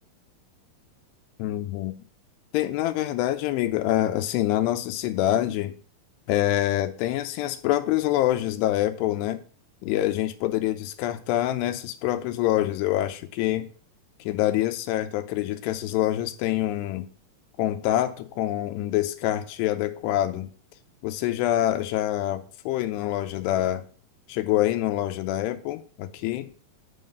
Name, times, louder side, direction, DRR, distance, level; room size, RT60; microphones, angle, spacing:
voice 1, 1.4-1.9 2.5-5.7 6.3-9.4 9.8-13.7 14.2-17.1 17.6-20.5 21.0-23.8 24.3-26.5, left 14 dB, 90° left, 2.8 m, -26 dB
10.0 x 4.0 x 5.1 m
omnidirectional pair, 4.7 m